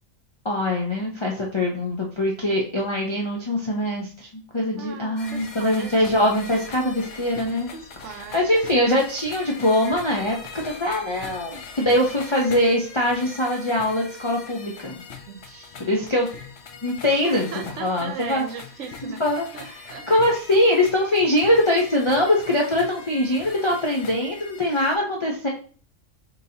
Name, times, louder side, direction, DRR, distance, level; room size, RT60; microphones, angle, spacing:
voice 1, 0.4-7.7 8.3-15.0 15.8-16.3 16.8-17.5 17.8-18.4 19.2-19.8 20.1-25.5, left 1 dB, 45° left, -2 dB, 0.4 m, -22 dB
voice 2, 4.8-6.3 7.7-8.6 15.3-15.8 17.2-19.2 19.5-20.0 24.7-25.0, right 6 dB, 65° right, 4 dB, 1.0 m, -37 dB
sound 1, 5.2-25.0, left 5 dB, 60° left, 0.7 m, -41 dB
5.3 x 2.7 x 2.7 m, 0.42 s
omnidirectional pair, 1.4 m